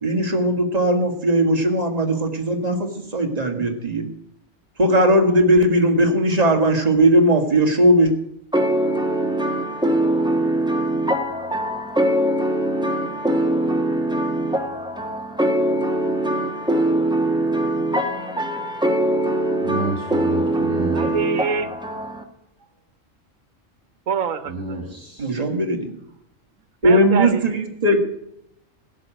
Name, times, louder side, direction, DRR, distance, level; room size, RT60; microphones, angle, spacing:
voice 1, 0.0-4.0 4.8-8.1 25.2-25.9 26.8-28.0, right 1 dB, 30° right, 3 dB, 2.0 m, -18 dB
sound 1, 8.5-22.2, right 1 dB, 5° right, 1.4 m, -22 dB
voice 2, 19.6-21.0 24.5-25.4, right 2 dB, 60° right, 3 dB, 2.2 m, -29 dB
voice 3, 20.9-21.7 24.1-24.8 26.8-27.5, right 7 dB, 90° right, 12 dB, 1.5 m, -25 dB
16.0 x 6.3 x 9.0 m, 0.79 s
omnidirectional pair, 1.3 m